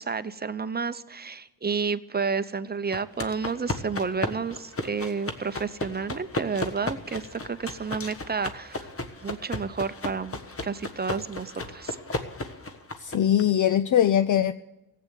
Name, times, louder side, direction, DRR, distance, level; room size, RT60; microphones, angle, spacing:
voice 1, 0.0-8.9 9.2-12.0, right 5 dB, 25° right, 0.7 m, -31 dB
sound 1, 2.9-13.4, left 2 dB, 35° left, 1.5 m, -35 dB
voice 2, 13.0-14.5, left 10 dB, 55° left, 0.5 m, -21 dB
15.0 x 8.5 x 9.2 m
cardioid pair, 80°, 38 cm